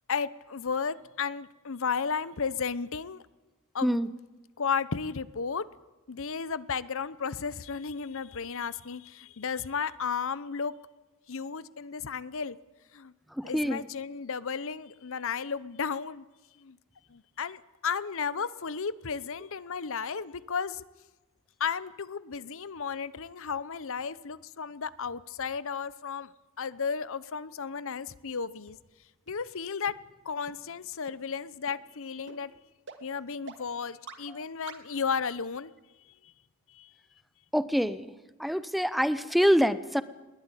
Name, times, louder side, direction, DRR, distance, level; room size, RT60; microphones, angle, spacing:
voice 1, 0.1-3.2 3.7-4.0 4.6-5.7 6.1-10.7 11.3-12.6 12.9-13.1 13.4-16.2 16.6-16.8 17.1-20.8 21.6-26.3 26.6-28.8 29.3-30.0 30.2-32.5 33.0-35.7 36.7-36.9, left 6 dB, 65° left, 18 dB, 0.8 m, -34 dB
voice 2, 13.3-13.9 34.3-34.4 37.5-38.1 38.4-40.0, equal, ahead, 15 dB, 0.8 m, -26 dB
sound 1, 28.1-28.2 28.7-28.8 29.3-29.4 29.9-30.0 30.5-30.6 31.1-31.2 31.7-31.8 32.3-32.4 32.9-33.0 33.5-33.6 34.1-34.2 34.7-34.8, right 5 dB, 60° right, 2.8 m, -45 dB
21.5 x 19.5 x 9.9 m, 1.2 s
head